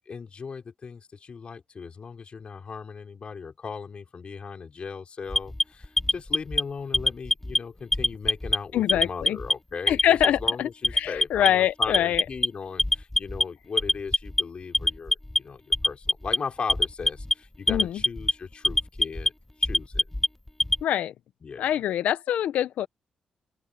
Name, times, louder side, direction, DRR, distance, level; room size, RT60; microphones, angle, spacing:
voice 1, 0.1-19.3 19.6-20.1 21.4-21.7, left 5 dB, 50° left, 3.9 m, -37 dB
Alarm, 5.3-6.6 6.9-7.6 7.9-8.6 8.9-9.5 9.9-10.5 10.8-11.5 11.8-12.5 12.8-13.4 13.8-14.4 14.7-15.4 15.7-16.4 16.7-17.3 17.7-18.3 18.6-19.3 19.6-20.8, left 1 dB, 10° left, 0.5 m, -23 dB
voice 2, 8.7-9.4 9.9-12.2 17.7-18.0 20.8-21.1 21.6-22.9, left 11 dB, 90° left, 0.5 m, -25 dB
open air
cardioid pair, 75°, 2 cm